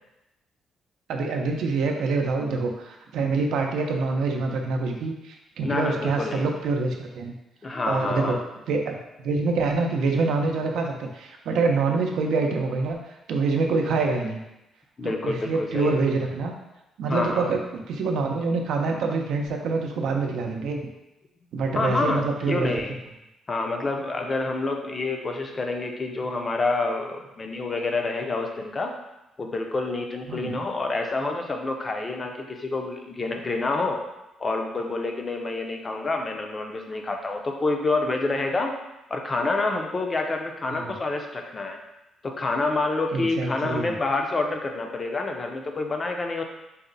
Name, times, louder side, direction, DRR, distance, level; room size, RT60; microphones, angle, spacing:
voice 1, 1.1-7.3 7.9-8.4 8.7-13.0 13.3-14.4 15.0-16.5 17.0-20.8 21.5-22.8 30.3-30.7 40.7-40.9 43.1-43.9, right 3 dB, 80° right, 2 dB, 0.5 m, -26 dB
voice 2, 5.6-6.5 7.6-8.4 15.0-15.9 17.1-17.5 21.7-23.0 23.5-28.9 29.4-34.0 34.4-38.7 39.1-41.8 42.2-46.4, left 3 dB, 30° left, 3 dB, 0.6 m, -28 dB
4.1 x 2.1 x 3.9 m, 0.93 s
cardioid pair, 90°, 0 cm